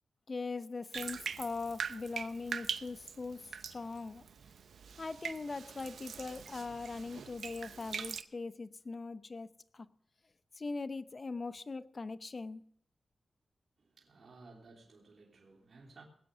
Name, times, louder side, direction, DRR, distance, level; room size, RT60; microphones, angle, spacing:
voice 1, 0.3-4.3 5.0-9.9 10.6-12.6, left 3 dB, 50° left, 0.8 m, -41 dB
Bathtub (filling or washing), 0.9-8.2, right 6 dB, 85° right, 0.7 m, -43 dB
voice 2, 13.8-16.0, right 3 dB, 65° right, 3.1 m, -57 dB
19.5 x 8.5 x 6.2 m
cardioid pair, 55°, 0 cm